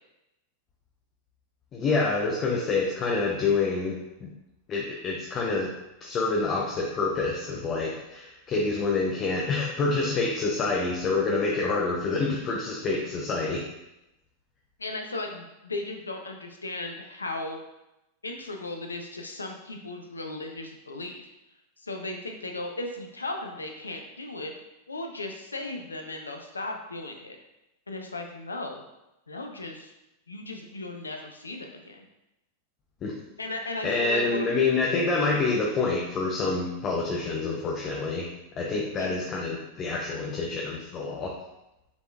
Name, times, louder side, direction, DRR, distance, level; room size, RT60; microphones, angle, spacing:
voice 1, 1.7-4.3 4.7-5.7 6.0-13.7 33.0-33.1 33.8-38.3 38.6-41.3, left 3 dB, 30° left, -2 dB, 0.6 m, -27 dB
voice 2, 14.8-17.6 18.2-21.3 21.8-24.5 24.9-27.4 27.9-28.8 29.3-29.9 30.3-32.1 33.4-34.5 38.9-39.1, left 2 dB, 75° left, 3 dB, 0.6 m, -36 dB
5.9 x 3.7 x 2.4 m, 0.92 s
figure-of-eight pair, 90°, 0 cm